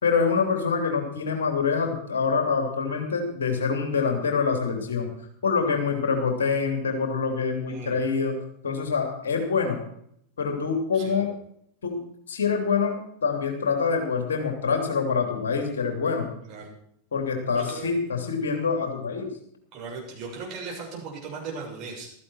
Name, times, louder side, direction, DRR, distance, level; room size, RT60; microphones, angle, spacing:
voice 1, 0.0-5.1 5.4-8.4 8.6-9.8 10.4-11.3 11.8-16.3 17.1-19.3, left 5 dB, 65° left, 4 dB, 3.1 m, -25 dB
voice 2, 7.7-8.0 10.9-11.2 16.4-16.7 17.6-17.9 19.7-22.1, right 4 dB, 40° right, -1 dB, 7.0 m, -37 dB
15.5 x 14.0 x 4.6 m, 0.69 s
figure-of-eight pair, 90°, 0 cm